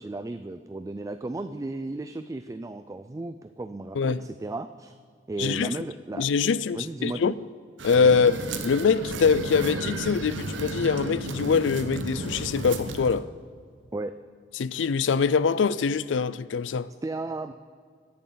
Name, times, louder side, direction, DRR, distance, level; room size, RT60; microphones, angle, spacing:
voice 1, 0.0-4.9 5.3-6.3 6.7-7.3 13.9-14.1 17.0-17.5, right 2 dB, 20° right, 0.3 m, -34 dB
voice 2, 4.0-4.3 5.4-5.7 6.1-7.3 7.8-13.3 14.6-16.9, left 5 dB, 80° left, 0.4 m, -24 dB
sound 1, 7.8-13.2, right 2 dB, 80° right, 1.0 m, -33 dB
17.0 x 11.0 x 3.9 m
head